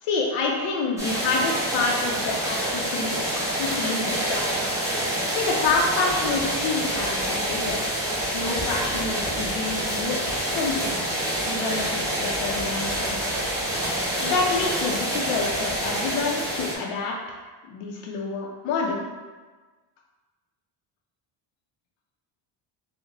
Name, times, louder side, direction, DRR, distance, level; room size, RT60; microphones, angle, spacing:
voice 1, 0.0-4.5 5.3-7.8 8.2-11.0 11.5-13.2 14.2-17.4 17.7-19.0, left 3 dB, 85° left, -2 dB, 0.6 m, -28 dB
sound 1, 1.0-16.7, right 1 dB, 5° right, 0.5 m, -27 dB
4.0 x 2.1 x 2.9 m, 1.3 s
cardioid pair, 165°, 50 cm